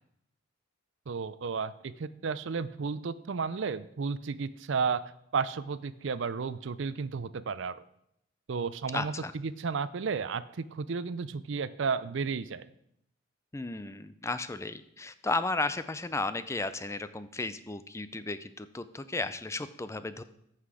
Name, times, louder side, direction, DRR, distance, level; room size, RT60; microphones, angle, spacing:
voice 1, 1.1-5.0 5.3-7.8 8.5-12.7, right 5 dB, 65° right, 15 dB, 0.5 m, -33 dB
voice 2, 8.9-9.3 13.5-20.2, left 3 dB, 15° left, 13 dB, 0.4 m, -34 dB
14.0 x 5.8 x 4.9 m, 0.75 s
head